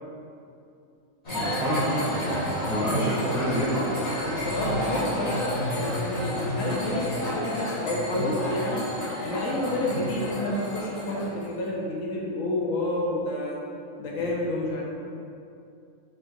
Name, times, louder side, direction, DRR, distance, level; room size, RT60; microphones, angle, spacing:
sound 1, 1.2-11.5, equal, 30° left, 1.1 m, -30 dB
voice 1, 1.3-3.9, right 1 dB, 5° right, -8 dB, 0.6 m, -28 dB
voice 2, 2.8-3.3 4.3-8.8 9.2-13.6 14.0-14.8, left 1 dB, 70° left, -2 dB, 1.0 m, -29 dB
4.6 x 3.9 x 2.5 m, 2.6 s
omnidirectional pair, 1.5 m